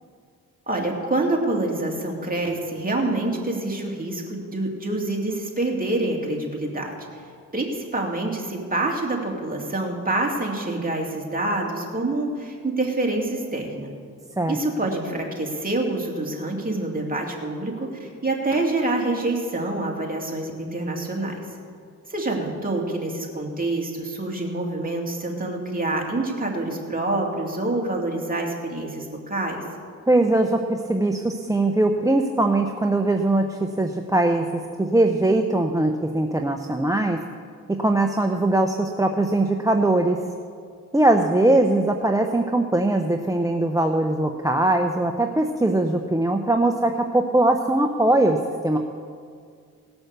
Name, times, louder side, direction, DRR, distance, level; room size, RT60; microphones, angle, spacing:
voice 1, 0.7-7.3 7.5-13.9 14.5-21.4 22.1-29.6, right 2 dB, 25° right, 0 dB, 2.7 m, -26 dB
voice 2, 30.1-37.2 37.7-40.2 40.9-48.8, right 2 dB, 10° right, 4 dB, 0.7 m, -21 dB
18.0 x 6.1 x 6.7 m, 2.2 s
cardioid pair, 65°, 33 cm